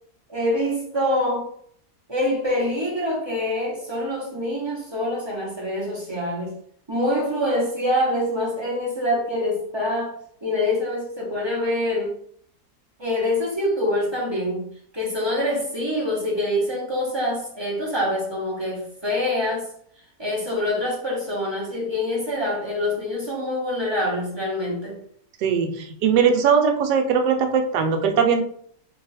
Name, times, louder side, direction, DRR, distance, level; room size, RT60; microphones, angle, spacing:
voice 1, 0.3-1.5 2.1-6.5 6.9-10.1 10.4-12.2 13.0-14.7 14.9-19.7 20.2-25.0, left 1 dB, 25° right, -4 dB, 0.6 m, -25 dB
voice 2, 25.4-28.4, right 6 dB, 80° right, 5 dB, 1.2 m, -20 dB
2.7 x 2.4 x 4.0 m, 0.63 s
omnidirectional pair, 1.8 m